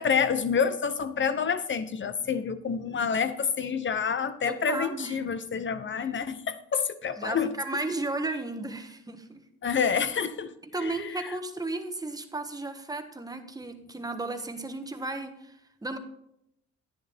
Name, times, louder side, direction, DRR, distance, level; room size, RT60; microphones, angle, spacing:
voice 1, 0.0-7.5 9.6-10.5 10.8-11.3, left 6 dB, 40° left, 12 dB, 0.9 m, -28 dB
voice 2, 4.5-5.2 7.2-9.4 10.7-16.0, right 2 dB, 10° right, 6 dB, 1.3 m, -34 dB
11.0 x 9.9 x 3.6 m, 0.77 s
cardioid pair, 90°, 30 cm